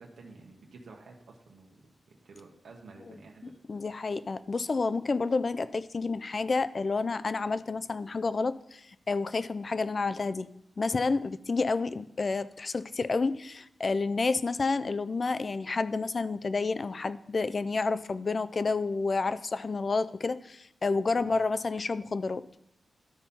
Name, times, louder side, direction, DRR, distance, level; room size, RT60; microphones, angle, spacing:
voice 1, 0.0-1.8 2.1-3.5 21.2-21.4, right 3 dB, 85° right, 0 dB, 1.1 m, -51 dB
voice 2, 3.7-10.5 10.8-22.4, left 4 dB, 35° left, 15 dB, 0.3 m, -30 dB
12.0 x 4.3 x 5.3 m, 0.77 s
wide cardioid pair, 165°, 0 cm